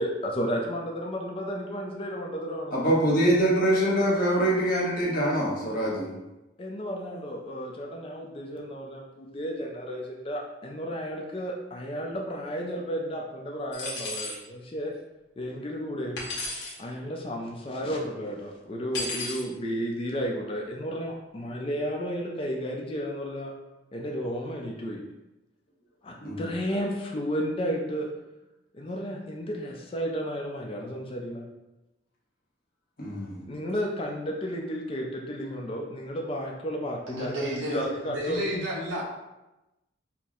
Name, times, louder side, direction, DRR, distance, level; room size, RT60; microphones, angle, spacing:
voice 1, 0.0-2.9 6.6-14.9 15.4-16.3 16.8-23.5 23.9-25.0 26.0-28.1 28.7-31.5 33.5-38.6, equal, 30° left, 0 dB, 0.4 m, -33 dB
voice 2, 2.7-6.1 26.2-26.5 33.0-33.4, right 1 dB, 50° left, -5 dB, 1.1 m, -24 dB
sound 1, 13.7-14.4 16.2-16.8 18.9-19.4, left 2 dB, 65° left, 1.0 m, -33 dB
voice 3, 37.1-39.0, equal, 85° right, -4 dB, 1.0 m, -32 dB
4.3 x 2.0 x 3.7 m, 0.98 s
head